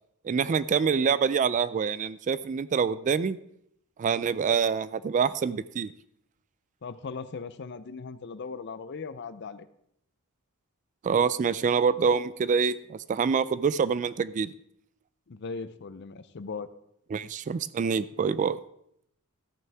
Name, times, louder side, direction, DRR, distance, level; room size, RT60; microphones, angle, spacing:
voice 1, 0.2-3.4 4.0-5.9 11.0-14.5 17.1-18.6, right 6 dB, 35° right, 16 dB, 0.3 m, -26 dB
voice 2, 6.8-9.7 15.3-16.7, left 4 dB, 50° left, 14 dB, 0.5 m, -38 dB
13.5 x 9.2 x 3.5 m, 0.75 s
head